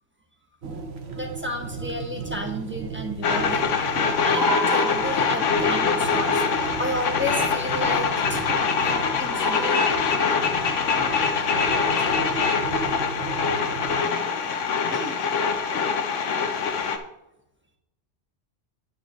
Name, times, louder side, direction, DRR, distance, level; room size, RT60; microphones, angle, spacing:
voice 1, 0.6-3.7 4.2-9.9 14.9-15.4, left 1 dB, 10° right, 2 dB, 1.2 m, -32 dB
sound 1, 0.6-14.0, right 4 dB, 60° right, 1.2 m, -34 dB
sound 2, 3.2-17.0, left 5 dB, 75° left, 1.2 m, -24 dB
9.8 x 8.7 x 3.1 m, 0.90 s
omnidirectional pair, 1.3 m